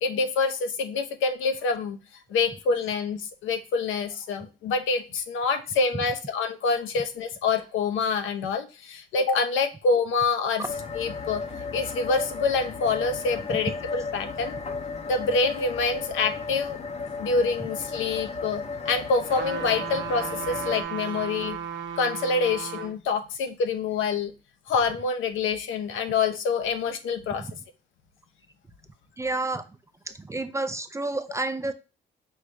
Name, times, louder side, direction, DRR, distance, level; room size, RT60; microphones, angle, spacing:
voice 1, 0.0-2.0 2.3-10.6 10.9-11.4 11.7-14.6 15.1-16.8 17.2-21.6 22.0-24.3 24.7-27.4, left 4 dB, 80° left, 8 dB, 0.7 m, -26 dB
sound 1, 10.6-20.8, left 4 dB, 35° left, 0.6 m, -35 dB
sound 2, 19.3-22.9 23.5-23.6, right 8 dB, 65° right, 0.7 m, -34 dB
voice 2, 29.2-29.6 30.1-31.7, right 2 dB, 15° right, 10 dB, 0.4 m, -30 dB
4.8 x 2.7 x 3.2 m, 0.31 s
cardioid pair, 90°, 20 cm